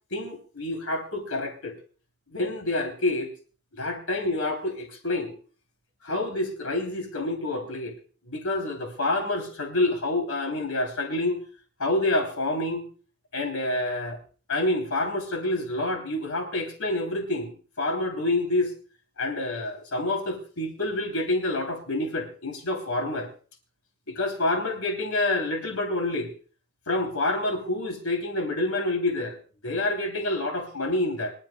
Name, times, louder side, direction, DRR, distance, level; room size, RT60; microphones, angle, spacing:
voice 1, 0.1-1.7 2.3-3.3 3.8-5.3 6.0-7.9 8.3-11.4 11.8-12.9 13.3-14.2 14.5-18.7 19.2-23.3 24.1-26.3 26.9-29.4 29.6-31.3, left 2 dB, 70° left, 2.9 m, -28 dB
25.5 x 12.0 x 2.2 m
head